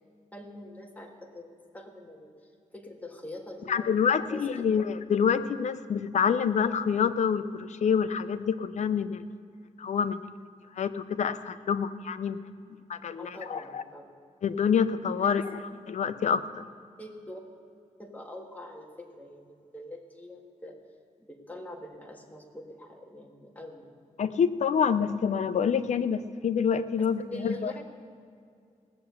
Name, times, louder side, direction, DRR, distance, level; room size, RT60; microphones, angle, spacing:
voice 1, 0.3-4.7 13.1-14.1 15.2-15.5 17.0-17.4 18.0-20.8 21.2-23.9 27.0-27.1 27.3-27.8, left 1 dB, 10° left, 1 dB, 1.6 m, -44 dB
voice 2, 3.7-9.2 9.8-10.2 10.8-12.4 12.9-13.8 14.4-15.4 15.9-16.6 24.2-27.7, left 7 dB, 65° left, 11 dB, 0.6 m, -27 dB
18.0 x 6.8 x 8.0 m, 2.3 s
wide cardioid pair, 115°, 13 cm